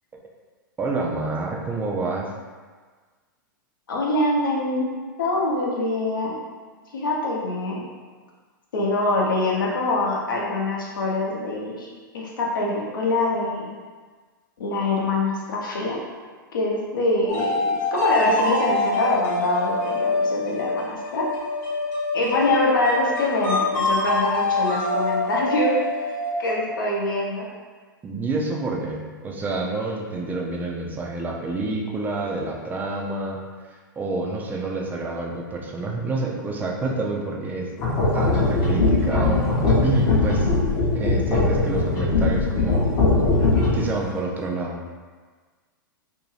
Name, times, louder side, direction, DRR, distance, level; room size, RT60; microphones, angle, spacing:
voice 1, 0.8-2.3 28.0-33.4 34.0-37.7 38.1-40.5 40.9-42.9 43.7-44.8, right 3 dB, 15° right, 0 dB, 0.3 m, -28 dB
voice 2, 3.9-4.9 5.2-6.4 6.9-7.9 8.7-11.9 12.1-13.7 14.6-16.0 16.5-21.3 22.1-25.7 26.0-26.1 26.4-27.5, left 2 dB, 70° left, -3 dB, 0.7 m, -24 dB
sound 1, 17.3-26.7, left 2 dB, 50° left, 1.0 m, -25 dB
sound 2, 37.8-44.0, left 3 dB, 35° left, 0.6 m, -20 dB
2.6 x 2.2 x 3.1 m, 1.5 s
figure-of-eight pair, 105°, 11 cm